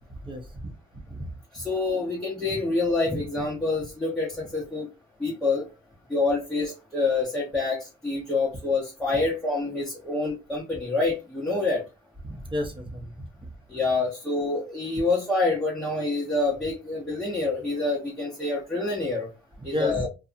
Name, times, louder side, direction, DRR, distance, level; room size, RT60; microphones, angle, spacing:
voice 1, 0.2-0.7 1.1-1.3 12.2-13.2 19.7-20.0, equal, 25° right, 3 dB, 0.9 m, -32 dB
voice 2, 1.5-4.9 5.2-5.7 6.1-11.8 13.7-19.3 19.6-20.1, left 3 dB, ahead, -5 dB, 0.9 m, -27 dB
2.7 x 2.3 x 2.5 m, 0.27 s
cardioid pair, 90°, 20 cm